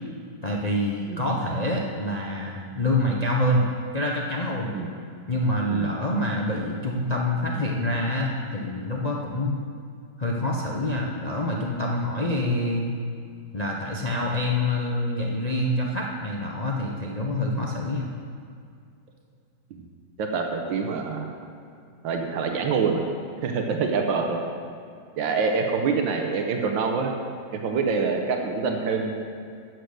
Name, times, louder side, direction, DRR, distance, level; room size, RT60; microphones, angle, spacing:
voice 1, 0.4-3.7 3.9-4.7 5.3-9.6 10.2-12.9 13.5-18.1, left 1 dB, 60° left, -2 dB, 0.4 m, -26 dB
voice 2, 20.2-21.3 22.0-23.0 23.4-24.4 25.2-27.1 27.5-29.1, right 5 dB, 90° right, 3 dB, 1.6 m, -25 dB
8.9 x 8.2 x 6.5 m, 2.3 s
omnidirectional pair, 2.0 m